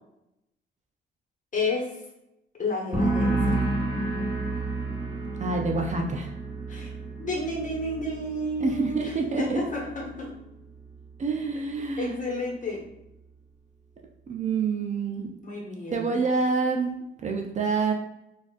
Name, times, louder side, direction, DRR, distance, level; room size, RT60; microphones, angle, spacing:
voice 1, 1.5-1.9 2.6-3.6 6.7-6.9 7.2-10.3 12.0-12.8 15.4-16.2, left 2 dB, 40° left, -2 dB, 1.1 m, -31 dB
sound 1, 2.9-10.4 10.7-11.2, right 2 dB, 20° right, 1.1 m, -31 dB
voice 2, 5.4-6.3 8.6-9.6 11.2-12.2 14.3-15.3 15.9-16.9 17.2-17.9, right 4 dB, 35° right, 2 dB, 0.5 m, -27 dB
4.0 x 2.4 x 2.4 m, 0.87 s
cardioid pair, 90°, 20 cm